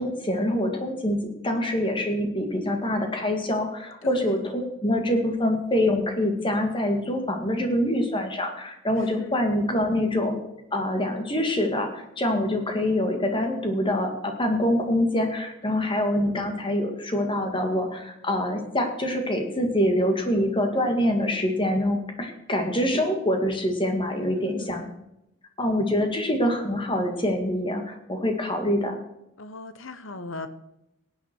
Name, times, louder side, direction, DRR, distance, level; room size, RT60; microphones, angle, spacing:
voice 1, 0.0-10.4 10.7-24.9 25.6-28.9, left 1 dB, 25° left, 4 dB, 1.9 m, -25 dB
voice 2, 4.0-4.3 9.2-9.4 15.6-16.0 24.2-24.8 29.4-30.5, left 3 dB, 60° left, 12 dB, 1.0 m, -39 dB
17.5 x 9.2 x 4.5 m, 0.85 s
head